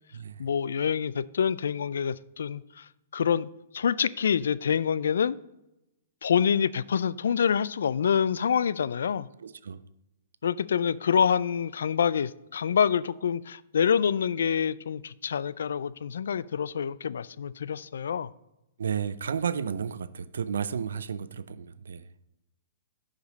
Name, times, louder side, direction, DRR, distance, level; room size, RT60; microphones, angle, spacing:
voice 1, 0.4-2.9 3.1-3.5 3.7-5.4 6.2-9.3 10.4-18.3, left 7 dB, 80° left, 0.3 m, -26 dB
voice 2, 9.4-9.8 18.8-22.0, right 7 dB, 80° right, 0.4 m, -32 dB
11.0 x 5.2 x 4.0 m
hypercardioid pair, 130°, 0 cm